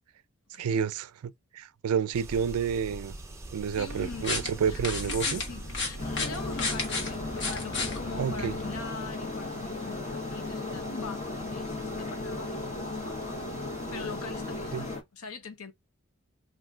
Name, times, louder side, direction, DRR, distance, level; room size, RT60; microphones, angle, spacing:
voice 1, 0.6-3.2 3.5-5.4 8.2-8.5 14.7-14.9, right 7 dB, 90° right, 0.4 m, -30 dB
sound 1, 2.1-15.0, right 2 dB, 15° right, 0.4 m, -46 dB
voice 2, 3.7-4.3 4.7-13.5 13.9-15.7, left 4 dB, 85° left, 0.8 m, -43 dB
sound 2, 3.9-8.8, left 3 dB, 50° left, 1.1 m, -34 dB
sound 3, 6.0-15.0, left 2 dB, 30° left, 0.8 m, -36 dB
3.7 x 2.5 x 2.3 m
head